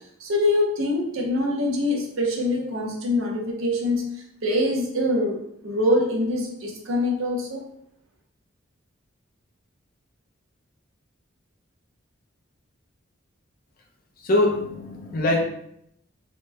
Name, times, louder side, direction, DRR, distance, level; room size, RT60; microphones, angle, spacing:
voice 1, 0.2-7.6, left 1 dB, 85° right, 0 dB, 0.7 m, -24 dB
voice 2, 14.2-15.4, left 1 dB, 45° left, 0 dB, 0.6 m, -22 dB
2.9 x 2.1 x 3.2 m, 0.73 s
head